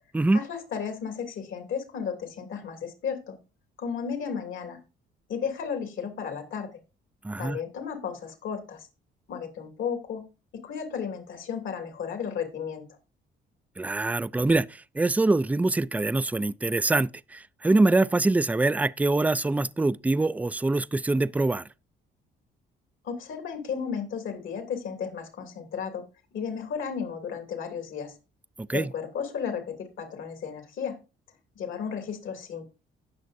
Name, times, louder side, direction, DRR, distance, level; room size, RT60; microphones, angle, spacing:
voice 1, 0.3-3.4 3.8-4.8 5.3-6.7 7.4-8.9 9.3-10.2 10.5-12.9 23.0-26.0 26.3-28.1 28.7-30.9 31.5-32.6, left 7 dB, 75° left, 2.8 m, -34 dB
voice 2, 7.2-7.6 13.8-14.7 15.0-21.6 28.6-28.9, right 2 dB, 5° right, 0.3 m, -24 dB
17.5 x 6.3 x 2.6 m
cardioid pair, 90°, 20 cm